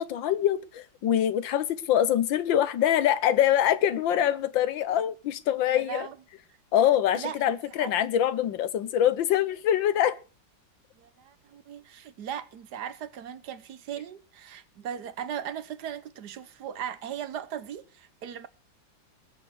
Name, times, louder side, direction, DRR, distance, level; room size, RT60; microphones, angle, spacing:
voice 1, 0.0-6.1 6.7-10.2, left 11 dB, 75° left, 1.6 m, -24 dB
voice 2, 5.7-6.1 7.1-7.4 7.8-7.9 11.0-18.5, right 9 dB, 65° right, 1.4 m, -38 dB
20.0 x 7.0 x 6.3 m
omnidirectional pair, 2.1 m